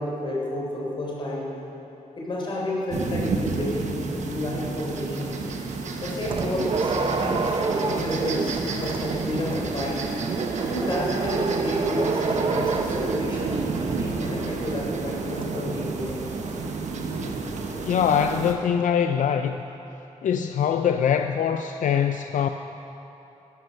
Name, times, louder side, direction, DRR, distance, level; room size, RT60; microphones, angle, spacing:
voice 1, 0.0-1.5 2.2-5.4 6.0-10.1 10.6-16.2, left 1 dB, 40° left, -4 dB, 3.7 m, -31 dB
sound 1, 2.9-18.5, right 4 dB, 65° right, 1.2 m, -31 dB
sound 2, 6.2-16.7, right 4 dB, 40° right, 0.7 m, -29 dB
voice 2, 17.8-19.6 20.2-22.5, left 8 dB, 80° left, 7 dB, 0.5 m, -23 dB
13.0 x 11.0 x 6.5 m, 3.0 s
wide cardioid pair, 170°, 13 cm